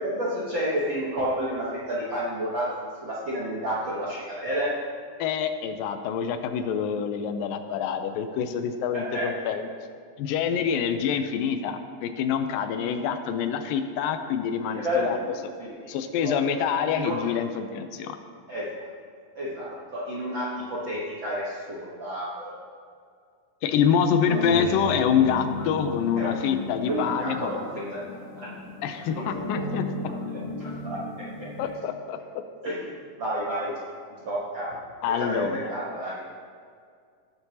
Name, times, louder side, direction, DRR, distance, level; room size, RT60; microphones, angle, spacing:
voice 1, 0.0-4.7 8.9-9.3 14.6-15.9 16.2-16.3 17.0-17.3 18.5-18.7 19.3-22.7 24.5-24.6 26.2-26.5 26.8-28.0 28.4-28.5 29.1-29.3 30.5-31.5 32.6-33.8 34.2-34.8 35.1-36.2, equal, 75° right, -7 dB, 1.1 m, -31 dB
voice 2, 5.2-9.7 10.2-15.2 15.9-18.2 23.6-27.5 28.8-29.8 31.6-32.2 35.0-35.7, left 7 dB, 85° left, 8 dB, 2.3 m, -26 dB
sound 1, 24.3-31.8, left 3 dB, 70° left, 2.6 m, -35 dB
17.5 x 6.8 x 2.8 m, 2.1 s
omnidirectional pair, 4.0 m